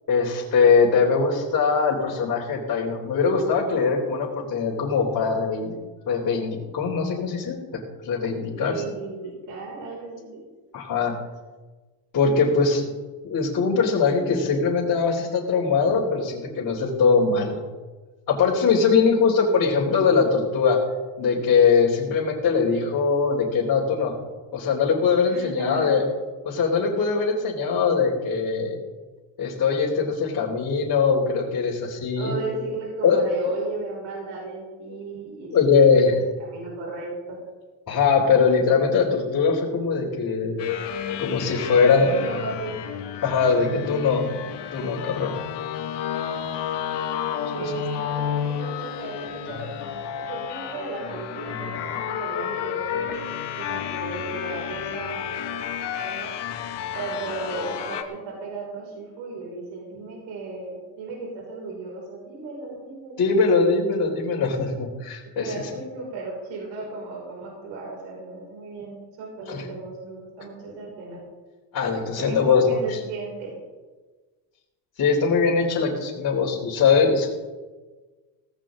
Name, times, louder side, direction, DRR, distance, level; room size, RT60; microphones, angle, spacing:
voice 1, 0.1-5.8 6.1-8.8 10.7-11.1 12.1-12.8 13.2-17.6 18.3-20.8 21.2-24.1 24.5-26.1 26.5-28.8 29.4-32.3 33.0-33.2 34.9-35.0 35.5-36.1 37.9-40.6 41.2-42.1 43.2-44.2 44.7-45.3 47.4-47.7 63.2-65.7 69.5-69.6 71.7-73.0 75.0-77.3, left 5 dB, 40° left, -5 dB, 3.5 m, -21 dB
voice 2, 8.5-10.4 25.3-25.9 32.2-35.7 36.0-37.4 41.7-41.8 42.1-42.7 47.5-49.6 50.2-53.3 53.6-55.5 55.8-56.4 56.9-63.2 65.4-71.2 72.1-73.5, right 3 dB, 70° right, -3 dB, 6.0 m, -35 dB
sound 1, 40.6-58.0, left 8 dB, 55° left, 2.1 m, -31 dB
17.5 x 15.5 x 3.8 m, 1.3 s
cardioid pair, 120°, 48 cm